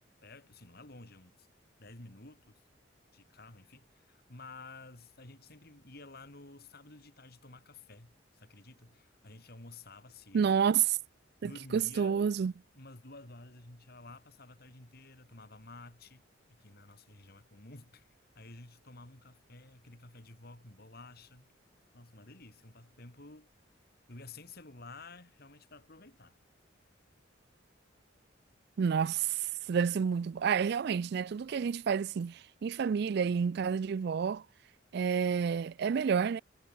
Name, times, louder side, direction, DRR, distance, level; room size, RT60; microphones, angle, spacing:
voice 1, 0.2-1.5 1.8-2.6 3.1-10.5 11.4-12.3 12.7-18.1 18.3-21.5 21.9-23.5 24.1-26.4, left 2 dB, 55° left, 3.0 m, -52 dB
voice 2, 10.3-11.0 11.4-12.5 28.8-34.4 34.9-36.4, right 7 dB, 55° right, 0.3 m, -29 dB
head